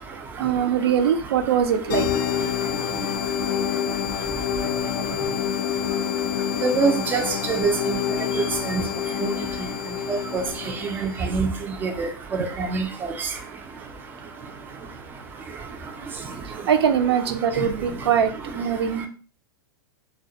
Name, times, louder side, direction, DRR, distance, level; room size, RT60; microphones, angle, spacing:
voice 1, 0.4-2.1 8.8-8.9 12.4-12.5 16.7-19.1, right 8 dB, 90° right, 0.4 m, -22 dB
sound 1, 1.9-11.3, left 9 dB, 60° left, 0.4 m, -27 dB
voice 2, 6.6-8.0 8.4-8.8 9.2-9.3 10.1-10.4 10.9-11.5 11.8-12.1 12.6-12.9, right 4 dB, 15° right, 0.3 m, -24 dB
2.1 x 2.1 x 2.7 m
supercardioid pair, 140°, 13 cm